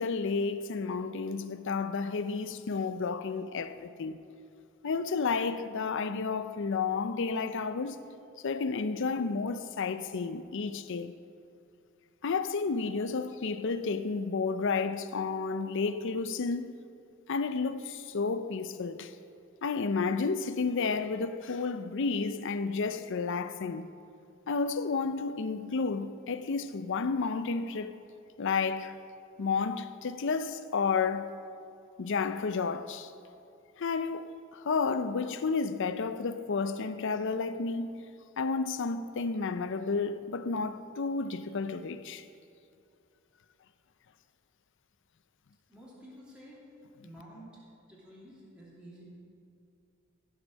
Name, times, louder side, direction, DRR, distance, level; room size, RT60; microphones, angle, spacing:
voice 1, 0.0-4.2 4.8-8.0 8.4-11.1 12.2-16.8 17.3-19.1 19.6-23.9 24.5-27.9 28.4-28.9 29.4-31.4 32.0-33.1 33.8-38.0 38.4-42.2, left 4 dB, 60° left, 0.5 m, -31 dB
voice 2, 45.7-46.6 47.0-47.6 47.9-49.0, equal, 5° right, 2.8 m, -51 dB
15.5 x 6.2 x 6.4 m
head